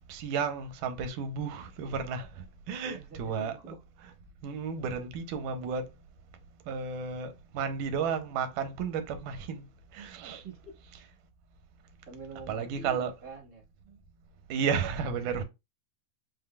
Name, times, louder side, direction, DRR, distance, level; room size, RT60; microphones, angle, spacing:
voice 1, 0.1-3.8 4.4-5.8 6.7-9.6 9.9-10.4 12.5-13.1 14.5-15.4, right 6 dB, 85° right, 2.3 m, -33 dB
voice 2, 2.8-3.8 10.2-10.7 12.1-13.6 15.3-15.4, right 4 dB, 45° right, 1.2 m, -46 dB
5.2 x 3.8 x 2.2 m
omnidirectional pair, 3.7 m